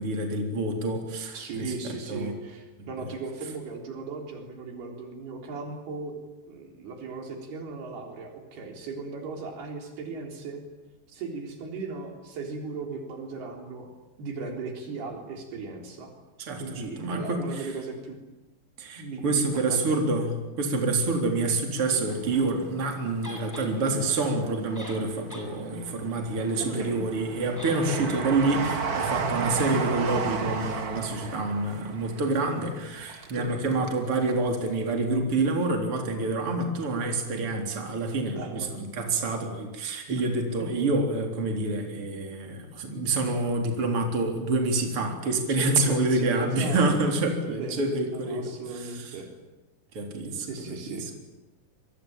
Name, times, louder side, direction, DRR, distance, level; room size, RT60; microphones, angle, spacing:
voice 1, 0.0-2.3 3.0-3.1 16.4-17.7 18.8-49.2 49.9-51.0, right 2 dB, 35° right, 3 dB, 4.3 m, -27 dB
voice 2, 1.3-6.2 6.5-10.6 11.1-13.9 14.2-16.1 16.6-18.2 19.0-19.8 26.6-27.1 27.7-28.1 29.4-29.7 33.3-33.5 38.3-38.7 40.6-40.7 45.6-47.0 47.4-49.3 50.4-51.2, right 4 dB, 75° right, 3 dB, 5.8 m, -37 dB
Train, 22.1-23.3 23.8-24.7 25.3-34.0 34.3-34.4, right 5 dB, 55° right, 1.0 m, -33 dB
sound 1, 23.2-23.7 24.5-24.6 24.7-25.5 25.8-25.9 27.6-27.8 28.1-28.2, equal, 5° left, 6.9 m, -41 dB
27.5 x 23.5 x 9.0 m, 1.1 s
omnidirectional pair, 4.5 m